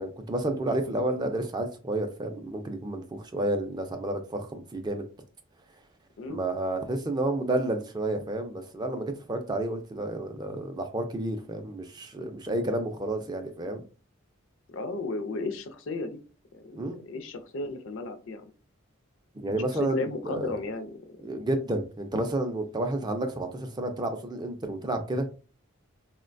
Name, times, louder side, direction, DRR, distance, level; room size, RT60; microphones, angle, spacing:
voice 1, 0.0-5.1 6.3-13.8 16.7-17.0 19.3-20.6 21.2-25.3, right 1 dB, 20° right, 0.3 m, -30 dB
voice 2, 14.7-16.2 16.5-16.8 17.0-18.5 19.8-21.2, left 2 dB, 65° left, 0.4 m, -34 dB
3.8 x 2.1 x 2.5 m
head